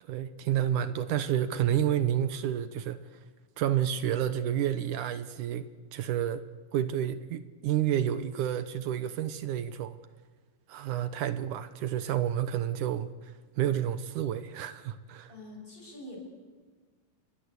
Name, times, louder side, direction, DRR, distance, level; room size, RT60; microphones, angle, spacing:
voice 1, 0.0-3.2 3.6-5.7 5.9-6.4 6.7-10.0 10.7-15.3, right 10 dB, 70° right, 2.3 m, -30 dB
voice 2, 15.3-16.2, left 1 dB, 15° left, 7.4 m, -45 dB
29.0 x 23.0 x 8.3 m
omnidirectional pair, 4.1 m